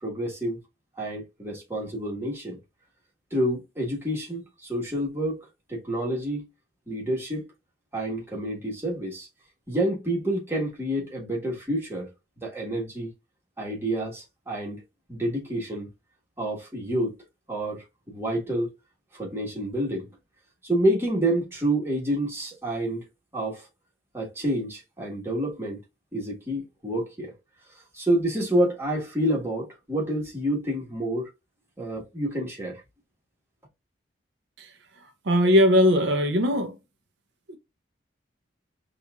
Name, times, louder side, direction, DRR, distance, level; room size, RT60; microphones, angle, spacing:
voice 1, 0.0-0.6 1.0-2.6 3.3-5.4 5.7-6.4 6.9-7.4 7.9-9.3 9.7-12.1 12.4-13.1 13.6-14.8 15.1-15.9 16.4-17.1 17.5-18.7 19.1-20.1 20.6-23.0 23.3-23.6 24.1-25.8 26.1-27.3 27.9-31.3 31.8-32.8, right 1 dB, 10° right, 1.4 m, -28 dB
voice 2, 35.2-36.8 37.5-37.6, equal, 65° right, 0.6 m, -20 dB
5.4 x 2.5 x 2.3 m
head